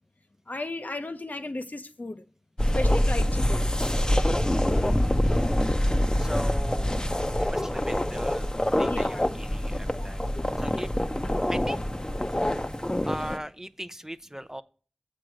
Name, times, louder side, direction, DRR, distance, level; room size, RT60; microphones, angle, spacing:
voice 1, 0.5-2.2 2.7-3.7 8.8-9.2 9.9-10.1 10.3-10.4 10.7-10.9, left 2 dB, 70° left, 0.7 m, -35 dB
sound 1, 2.6-13.4, left 1 dB, 25° left, 0.7 m, -25 dB
voice 2, 4.7-5.4 6.2-7.0 7.4-8.4 8.8-10.3 10.6-10.9 11.5-11.8 13.0-14.6, equal, 15° right, 0.5 m, -39 dB
7.5 x 4.7 x 6.2 m
wide cardioid pair, 40°, 3 cm